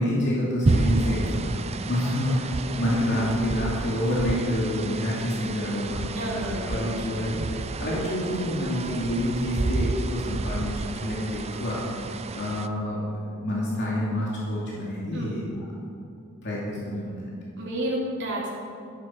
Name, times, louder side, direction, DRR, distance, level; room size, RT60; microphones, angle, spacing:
voice 1, 0.0-15.4 16.4-17.4, left 1 dB, 55° left, -6 dB, 2.5 m, -28 dB
sound 1, 0.6-12.7, right 3 dB, 30° right, 0.5 m, -30 dB
voice 2, 6.1-6.7 7.8-8.0 15.1-15.4 17.6-18.5, right 1 dB, 60° right, -6 dB, 2.9 m, -30 dB
13.0 x 12.0 x 4.6 m, 2.5 s
head